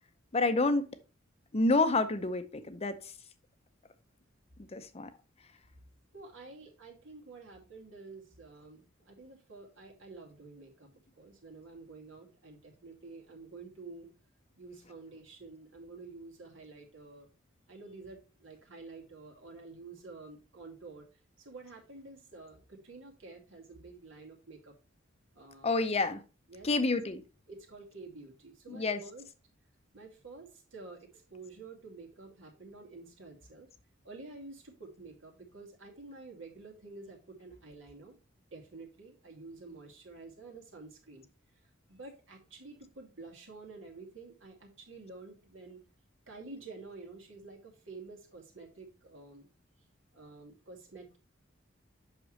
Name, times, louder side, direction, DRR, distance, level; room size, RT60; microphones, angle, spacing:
voice 1, 0.3-1.0 1.5-3.0 4.7-5.1 25.6-26.2 26.6-27.2 28.7-29.0, left 3 dB, 30° left, 0.7 m, -28 dB
voice 2, 6.1-10.9 11.2-14.1 14.6-17.3 17.7-21.1 21.4-24.7 25.3-25.8 26.5-26.7 27.5-29.2 29.9-33.7 34.0-38.2 38.5-41.3 41.9-45.8 46.3-49.5 50.1-51.2, right 3 dB, 75° right, 2.4 m, -49 dB
7.9 x 6.0 x 3.2 m
head